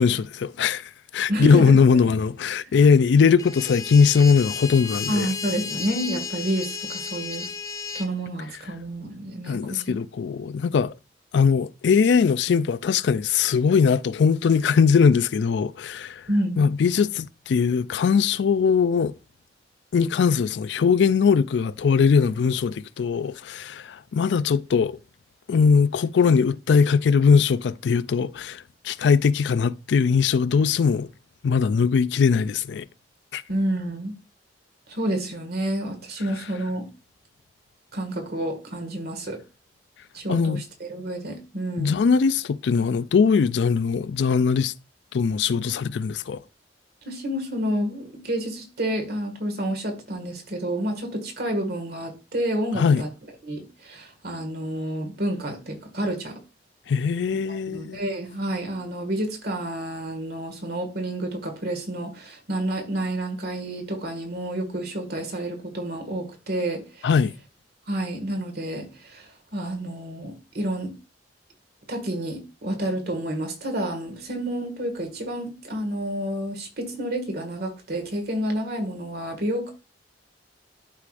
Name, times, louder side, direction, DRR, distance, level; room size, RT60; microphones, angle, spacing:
voice 1, 0.0-5.3 9.5-10.9 11.3-16.2 16.6-19.1 19.9-25.0 25.5-31.1 31.4-32.9 33.3-33.4 40.3-40.6 41.8-44.7 45.1-46.4 52.8-53.0 56.9-58.0 67.0-67.3, left 5 dB, 70° left, 0.4 m, -20 dB
voice 2, 1.3-1.8 5.1-7.5 7.9-10.0 16.3-16.6 33.5-34.1 34.9-36.9 37.9-39.4 40.1-42.0 47.0-53.1 53.4-56.4 57.5-67.1 67.9-70.9 71.9-79.7, right 1 dB, 60° right, 1.8 m, -29 dB
sound 1, 3.4-8.1, left 6 dB, 20° left, 0.5 m, -33 dB
11.5 x 4.9 x 2.5 m
head